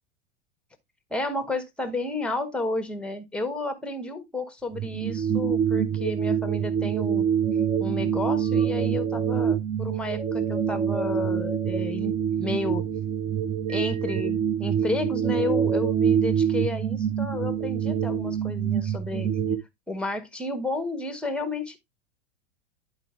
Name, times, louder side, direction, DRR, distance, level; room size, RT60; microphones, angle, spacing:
voice 1, 1.1-7.2 7.8-12.8 13.7-19.3 19.9-21.8, left 2 dB, 5° left, 1.2 m, -31 dB
sound 1, 4.7-19.6, right 8 dB, 15° right, 0.9 m, -26 dB
10.5 x 4.6 x 3.2 m
figure-of-eight pair, 90°, 35 cm